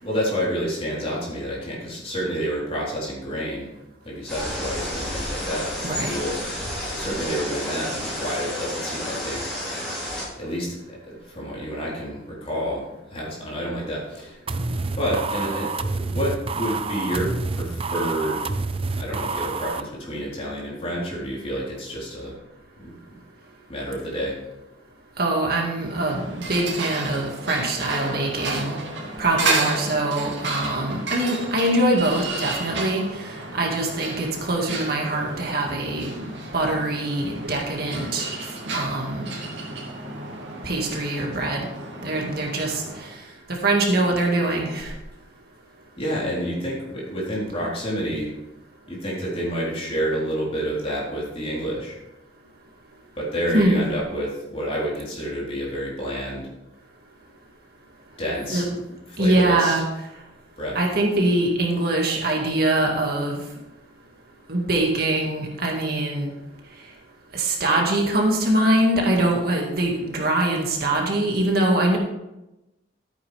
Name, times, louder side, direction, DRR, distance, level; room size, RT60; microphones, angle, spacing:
voice 1, 0.0-3.7 4.0-9.4 10.4-10.7 11.0-14.4 14.7-18.5 19.0-22.3 22.8-22.9 23.7-24.4 46.0-48.3 48.9-52.0 53.2-56.5 58.2-58.7 59.1-59.8 60.6-60.8, equal, 30° left, -5 dB, 4.0 m, -29 dB
sound 1, 4.3-10.3, left 1 dB, 5° left, 4.8 m, -31 dB
voice 2, 5.8-6.2 25.2-28.8 29.2-33.0 33.5-39.3 40.6-41.7 42.0-43.1 43.6-44.9 53.5-53.8 58.5-58.8 59.2-59.8 60.7-63.4 64.5-66.3 67.3-72.0, right 1 dB, 55° right, 0 dB, 2.1 m, -23 dB
sound 2, 14.5-19.8, right 3 dB, 30° right, 0.5 m, -28 dB
sound 3, 25.7-43.2, right 3 dB, 80° right, 2.5 m, -32 dB
13.5 x 8.9 x 3.5 m, 0.95 s
head